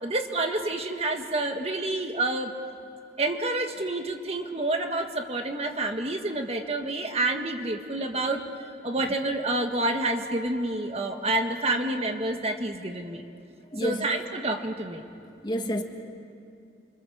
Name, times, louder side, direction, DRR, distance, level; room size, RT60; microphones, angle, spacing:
voice 1, 0.0-2.5 3.2-13.2 13.8-15.0, right 2 dB, 35° right, 4 dB, 1.5 m, -28 dB
voice 2, 13.7-14.0 15.4-15.8, equal, 25° left, 4 dB, 1.6 m, -29 dB
29.5 x 26.0 x 7.1 m, 2.5 s
head